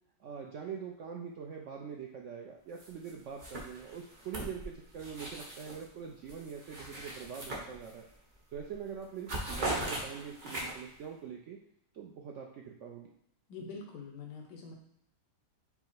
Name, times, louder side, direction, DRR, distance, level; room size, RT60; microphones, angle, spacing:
voice 1, 0.2-8.0 8.5-11.6 11.9-13.1, right 7 dB, 75° right, 0 dB, 0.7 m, -43 dB
sound 1, 2.8-3.1 3.4-5.8 6.2-8.1 8.5-8.7 9.0-11.0, right 2 dB, 35° right, 0.9 m, -39 dB
voice 2, 13.5-14.7, left 4 dB, 80° left, 1 dB, 1.3 m, -45 dB
5.6 x 2.0 x 4.5 m, 0.75 s
omnidirectional pair, 1.8 m